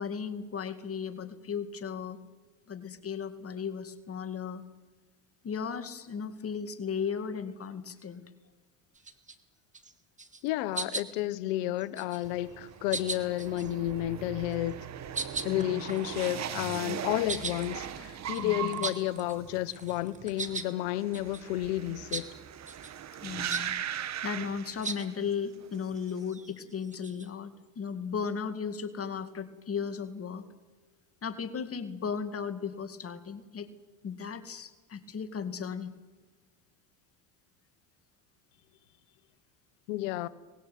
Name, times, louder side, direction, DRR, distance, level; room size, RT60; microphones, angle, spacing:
voice 1, 0.0-2.2 2.7-4.6 5.4-8.2 15.5-16.0 18.4-18.9 23.2-30.4 31.2-33.7 34.0-35.9, left 6 dB, 35° left, 2.3 m, -36 dB
sound 1, 8.9-9.3 9.7-9.9 10.2-10.5 10.7-11.3 11.8-12.3 12.9-13.7 14.5-14.7 15.1-19.4 19.7-20.7 21.1-21.4 22.1-22.3 22.7-22.9 23.5-23.7 24.8-25.1 25.7-27.3, right 3 dB, 15° right, 2.3 m, -38 dB
voice 2, 10.4-14.9 15.4-22.3 39.9-40.3, left 15 dB, 75° left, 1.3 m, -31 dB
sound 2, 12.2-25.3 25.6-26.2, right 10 dB, 40° right, 1.6 m, -39 dB
24.0 x 20.0 x 9.4 m
supercardioid pair, 100°, 41 cm